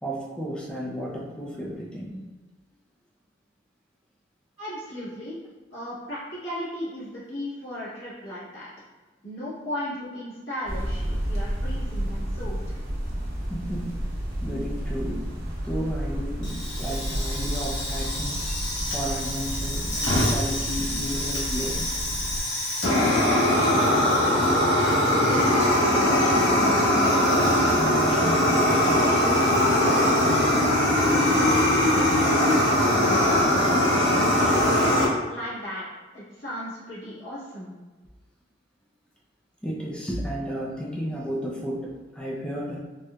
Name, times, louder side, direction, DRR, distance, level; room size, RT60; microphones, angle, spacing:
voice 1, 0.0-2.3 13.5-14.1 14.4-15.3 15.6-18.4 18.9-21.9 27.8-32.4 39.6-42.8, equal, 5° left, -5 dB, 0.4 m, -33 dB
voice 2, 4.6-5.4 5.7-8.7 9.2-12.8 23.5-24.0 24.4-26.5 34.4-35.8 36.1-37.7, left 1 dB, 80° left, -11 dB, 1.5 m, -36 dB
sound 1, 10.7-22.4, equal, 50° right, 0.8 m, -31 dB
Fire, 16.4-35.0, left 1 dB, 65° left, 1.0 m, -22 dB
4.2 x 2.4 x 2.2 m, 1.2 s
head